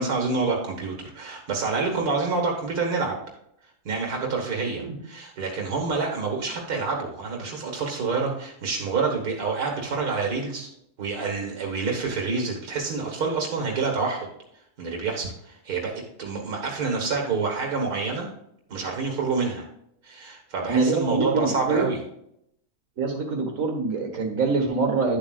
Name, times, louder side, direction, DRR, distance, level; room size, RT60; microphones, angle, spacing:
voice 1, 0.0-3.1 3.9-10.7 11.0-14.3 14.8-18.3 18.7-19.7 20.0-22.0, right 4 dB, 85° right, 0 dB, 2.0 m, -27 dB
voice 2, 20.7-21.9 23.0-25.2, right 4 dB, 60° right, 2 dB, 2.1 m, -24 dB
10.5 x 7.5 x 2.4 m, 0.74 s
omnidirectional pair, 1.6 m